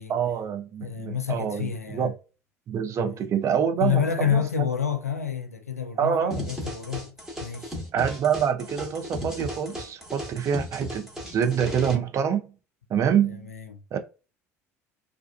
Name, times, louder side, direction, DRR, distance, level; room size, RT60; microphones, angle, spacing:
voice 1, 0.1-2.1 2.7-4.7 6.0-6.4 7.9-12.5 12.9-13.5 13.9-14.0, right 8 dB, 40° right, 0.6 m, -26 dB
voice 2, 0.8-2.1 3.0-3.2 3.8-7.7 13.3-13.8, left 8 dB, 85° left, 0.4 m, -29 dB
sound 1, 6.3-11.9, equal, 5° right, 1.2 m, -36 dB
2.4 x 2.2 x 2.3 m
figure-of-eight pair, 60°, 8 cm